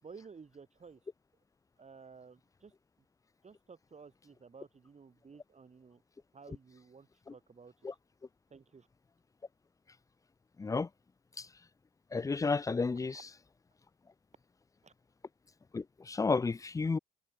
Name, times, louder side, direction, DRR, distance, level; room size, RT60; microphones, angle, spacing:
voice 1, 0.0-1.1 1.8-2.7 3.4-6.0 6.3-8.0 8.5-8.9 13.1-13.2 14.8-14.9 16.8-16.9, right 5 dB, 35° right, 3.9 m, -54 dB
voice 2, 12.1-13.1 15.7-17.0, left 4 dB, 15° left, 0.4 m, -31 dB
cardioid pair, 90°, 20 cm